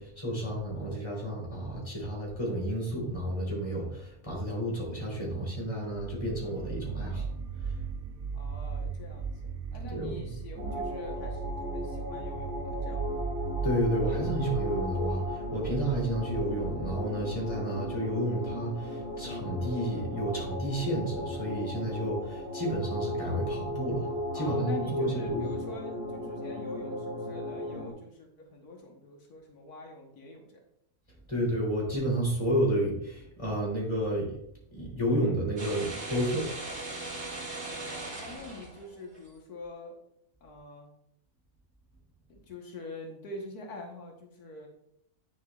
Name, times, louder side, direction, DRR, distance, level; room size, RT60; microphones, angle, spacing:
voice 1, 0.0-7.3 7.6-7.8 9.9-10.2 13.6-24.1 24.3-25.4 31.3-34.4 34.7-36.5, right 1 dB, 20° left, -4 dB, 3.2 m, -31 dB
sound 1, 5.9-22.9, right 5 dB, 80° right, 0.5 m, -38 dB
voice 2, 8.3-13.1 24.3-30.6 37.8-40.0 40.4-40.9 42.3-44.7, left 2 dB, 85° left, 1 dB, 1.7 m, -45 dB
sound 2, 10.6-27.9, left 1 dB, 15° right, 1.9 m, -36 dB
sound 3, 35.6-39.2, right 2 dB, 55° right, 2.2 m, -39 dB
9.2 x 7.1 x 2.4 m, 0.76 s
omnidirectional pair, 1.6 m